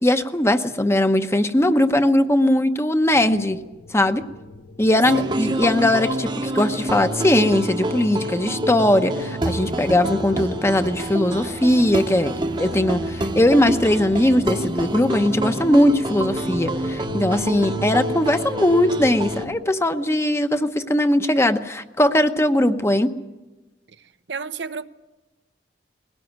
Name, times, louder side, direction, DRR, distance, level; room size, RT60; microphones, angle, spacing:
voice 1, 0.0-3.6 3.9-4.2 4.8-23.1, left 1 dB, 15° left, 9 dB, 0.9 m, -19 dB
sound 1, 3.1-19.6, left 2 dB, 75° left, 1.1 m, -41 dB
voice 2, 4.9-5.4 24.3-24.8, right 4 dB, 90° right, 11 dB, 0.8 m, -32 dB
sound 2, 5.0-19.5, right 1 dB, 25° right, 1.0 m, -27 dB
21.0 x 17.0 x 9.4 m, 1.1 s
head